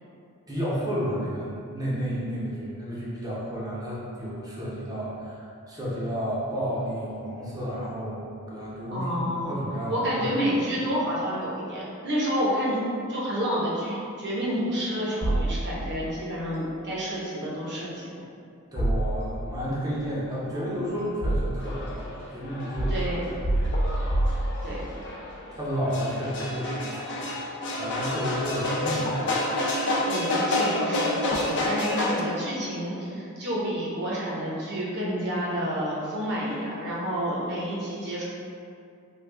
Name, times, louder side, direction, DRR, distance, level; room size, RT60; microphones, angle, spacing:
voice 1, 0.5-9.1 9.5-10.2 18.7-22.9 23.5-24.1 25.5-26.8 27.8-29.4, equal, 15° right, -7 dB, 0.7 m, -31 dB
voice 2, 8.9-9.5 9.9-12.8 13.1-18.2 22.9-23.2 24.6-24.8 30.1-38.2, equal, 50° right, -7 dB, 0.9 m, -29 dB
sound 1, 15.2-16.1 18.8-19.6 20.5-21.9 22.8-25.0, right 1 dB, 85° left, 0.9 m, -27 dB
sound 2, 21.6-32.2, left 2 dB, 55° left, 0.4 m, -29 dB
3.4 x 2.3 x 3.3 m, 2.4 s
head